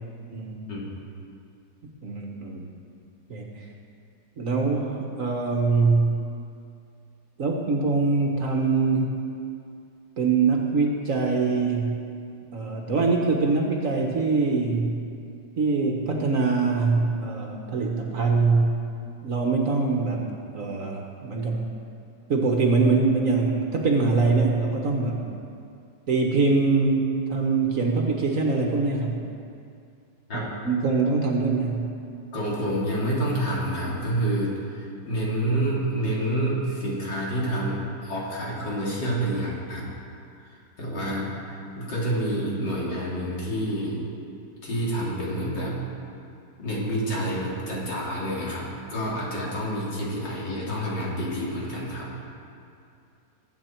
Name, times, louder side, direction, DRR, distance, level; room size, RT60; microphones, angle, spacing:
voice 1, 2.0-2.7 3.3-3.5 4.4-6.2 7.4-9.2 10.2-12.0 12.5-15.0 15.6-18.7 19.2-20.3 20.5-21.7 22.3-25.2 26.1-29.2 30.3-31.9, right 4 dB, 50° right, 1 dB, 1.4 m, -23 dB
voice 2, 32.3-39.9 40.4-44.0 44.6-45.8 46.6-52.1, right 1 dB, 80° left, -5 dB, 3.5 m, -28 dB
20.5 x 8.2 x 4.5 m, 2.5 s
omnidirectional pair, 1.9 m